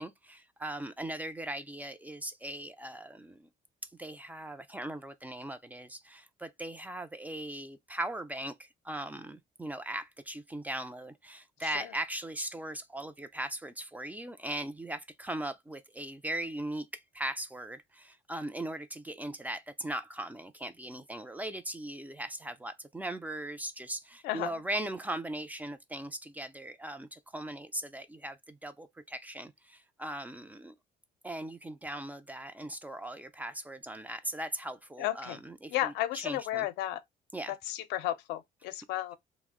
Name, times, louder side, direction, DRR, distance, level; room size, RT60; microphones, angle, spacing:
voice 1, 0.0-3.5 3.8-30.7 31.2-36.7 37.3-37.5, right 1 dB, 10° right, 0.3 m, -39 dB
voice 2, 24.2-24.6 35.0-35.4 35.7-37.0 37.5-39.2, left 14 dB, 90° left, 0.5 m, -33 dB
2.5 x 2.0 x 3.5 m
cardioid pair, 110°, 17 cm